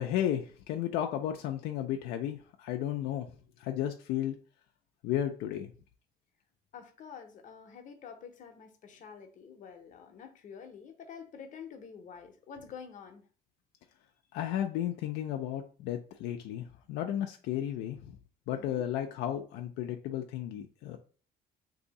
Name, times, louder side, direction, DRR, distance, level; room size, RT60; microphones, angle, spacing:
voice 1, 0.0-3.3 3.6-4.4 5.0-5.7 14.3-18.2 18.5-21.0, left 11 dB, 85° left, 4 dB, 0.4 m, -33 dB
voice 2, 6.7-13.2 18.5-18.9, left 6 dB, 50° left, 5 dB, 0.7 m, -48 dB
2.7 x 2.6 x 3.8 m, 0.40 s
cardioid pair, 110°, 17 cm